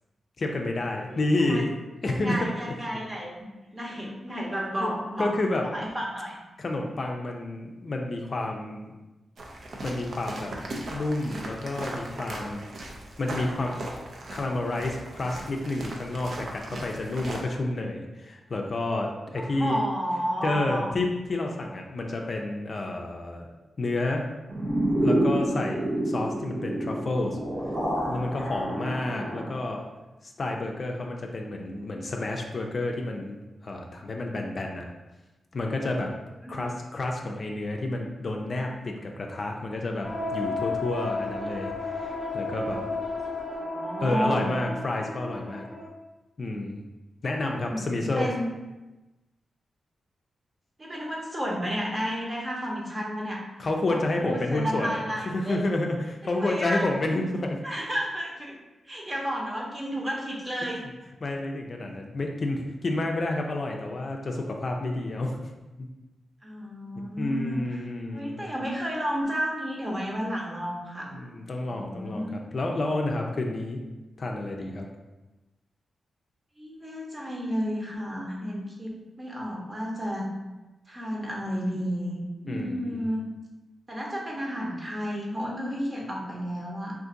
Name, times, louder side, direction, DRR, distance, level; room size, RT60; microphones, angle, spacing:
voice 1, 0.4-1.7 2.0-2.4 4.8-4.9 5.2-5.6 6.6-8.9 9.8-10.5 10.9-12.7 13.2-13.8 14.3-19.8 20.4-23.5 23.8-24.2 25.0-27.4 28.1-29.8 30.2-33.4 33.6-34.9 35.5-36.1 36.5-42.8 44.0-45.6 46.4-46.8 47.2-48.3 53.6-57.6 61.2-65.5 65.8-65.9 67.0-68.5 71.1-73.8 74.2-74.9 82.5-83.1, left 2 dB, 50° left, 1 dB, 0.4 m, -30 dB
voice 2, 2.0-3.5 3.7-5.3 5.6-6.4 19.4-21.0 36.4-36.7 43.3-44.5 47.6-48.5 50.8-53.4 53.9-55.6 56.4-56.9 57.6-58.6 58.9-60.9 66.4-67.8 68.1-71.1 71.7-72.3 76.6-78.9 79.2-80.3 80.9-83.3 83.9-86.9, equal, 30° right, -2 dB, 0.8 m, -32 dB
sound 1, 9.4-17.5, right 1 dB, 65° right, 0.5 m, -38 dB
sound 2, 24.5-29.7, right 1 dB, 90° right, 0.9 m, -28 dB
sound 3, 40.0-45.9, left 2 dB, 15° left, 0.9 m, -33 dB
2.6 x 2.5 x 3.7 m, 1.1 s
cardioid pair, 70°, 0 cm